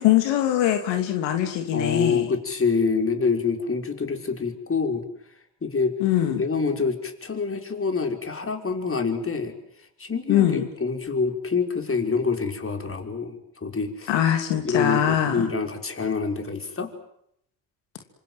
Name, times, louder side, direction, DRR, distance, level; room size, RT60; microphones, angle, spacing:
voice 1, 0.0-2.3 6.0-6.4 10.3-10.6 14.1-15.5, left 11 dB, 80° left, 6 dB, 2.9 m, -22 dB
voice 2, 1.7-5.0 5.6-5.9 6.4-9.5 10.0-14.1 14.6-16.9, left 5 dB, 30° left, 5 dB, 5.7 m, -26 dB
27.0 x 26.0 x 8.0 m, 0.74 s
supercardioid pair, 65°, 43 cm